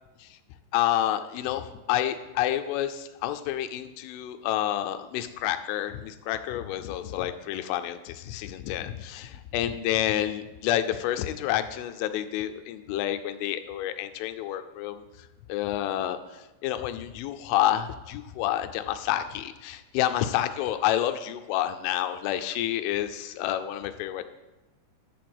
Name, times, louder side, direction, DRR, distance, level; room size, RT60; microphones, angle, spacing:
voice 1, 0.7-15.0 15.5-24.2, left 12 dB, 85° left, 8 dB, 2.9 m, -29 dB
11.0 x 4.7 x 7.7 m, 1.1 s
omnidirectional pair, 5.6 m